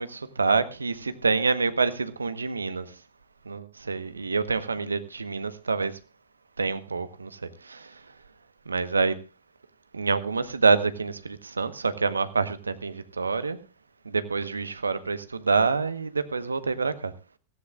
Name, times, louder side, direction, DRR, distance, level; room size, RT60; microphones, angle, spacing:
voice 1, 0.0-2.9 3.4-6.0 6.6-8.0 8.7-9.2 9.9-13.6 14.0-17.1, right 4 dB, 85° right, 1.1 m, -27 dB
18.5 x 15.0 x 2.4 m
figure-of-eight pair, 90°, 0 cm